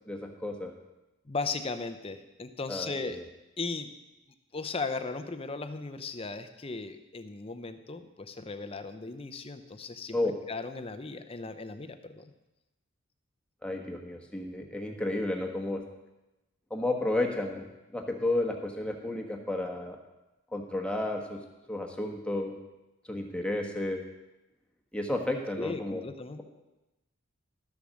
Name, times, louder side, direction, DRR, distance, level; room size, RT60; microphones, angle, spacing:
voice 1, 0.1-0.7 2.7-3.2 10.1-10.3 13.6-15.8 16.7-20.0 20.5-21.4 21.7-22.6 23.0-24.0 24.9-26.0, left 1 dB, 5° left, 2 dB, 1.2 m, -32 dB
voice 2, 1.3-3.2 3.6-3.9 4.5-10.2 10.5-12.3 25.6-26.4, left 3 dB, 25° left, 9 dB, 0.6 m, -37 dB
12.5 x 6.9 x 6.4 m, 1.0 s
head